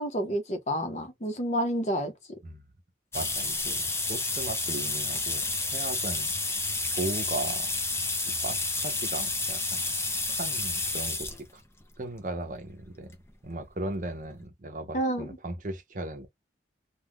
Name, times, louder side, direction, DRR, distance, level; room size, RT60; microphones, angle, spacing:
voice 1, 0.0-2.1 14.9-15.3, equal, 35° left, 0.8 m, -29 dB
sound 1, 3.1-11.4 12.3-12.4 13.6-13.7 14.0-14.1 14.4-14.5, left 3 dB, 15° left, 0.5 m, -30 dB
voice 2, 3.1-6.3 6.9-7.7 8.4-9.8 10.1-11.6 12.0-13.1 13.4-16.3, right 2 dB, 45° right, 0.7 m, -37 dB
2.4 x 2.3 x 3.5 m
head